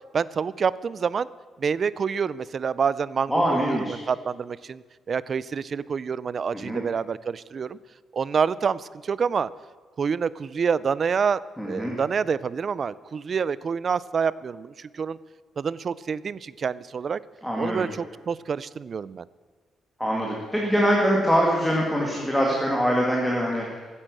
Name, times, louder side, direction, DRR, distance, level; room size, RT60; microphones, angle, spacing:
voice 1, 0.1-1.3 1.6-7.8 8.1-9.5 10.0-15.2 15.6-17.2 17.6-19.3, right 6 dB, 35° right, 19 dB, 0.4 m, -27 dB
voice 2, 3.3-4.0 6.5-6.8 11.6-12.0 17.4-17.9 20.0-23.6, equal, ahead, -2 dB, 1.9 m, -23 dB
15.0 x 9.9 x 7.6 m, 1.4 s
cardioid pair, 180°, 0 cm